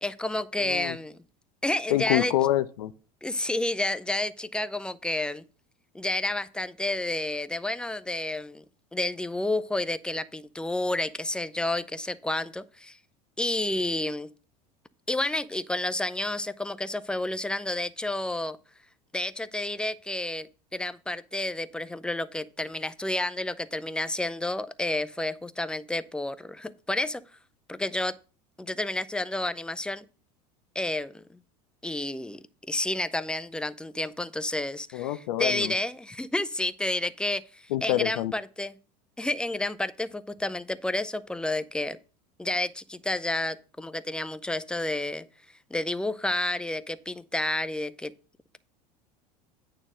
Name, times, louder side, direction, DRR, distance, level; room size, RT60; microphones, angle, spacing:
voice 1, 0.0-1.2 1.6-2.3 3.2-5.4 5.9-8.6 8.9-13.0 13.4-14.3 15.1-18.6 19.1-20.5 20.7-27.2 27.7-28.1 28.6-30.0 30.8-31.2 31.8-32.4 32.7-35.1 35.4-38.7 39.2-42.0 42.4-45.2 45.7-48.1, left 1 dB, 5° left, 0.5 m, -30 dB
voice 2, 0.6-1.0 1.9-2.9 34.9-35.7 37.7-38.3, left 13 dB, 70° left, 0.6 m, -26 dB
8.9 x 3.8 x 6.2 m
hypercardioid pair, 80°, 21 cm